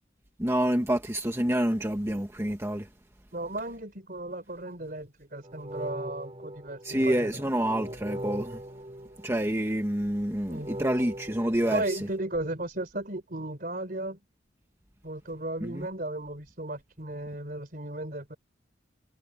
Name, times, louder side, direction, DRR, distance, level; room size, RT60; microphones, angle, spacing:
voice 1, 0.4-2.9 6.8-8.6 9.2-12.0 15.6-15.9, right 1 dB, 15° right, 1.4 m, -28 dB
voice 2, 3.3-7.4 10.5-10.8 11.7-14.2 15.0-18.4, right 1 dB, 50° right, 3.8 m, -35 dB
sound 1, 5.4-9.7 10.6-11.8, right 1 dB, 30° right, 5.2 m, -40 dB
head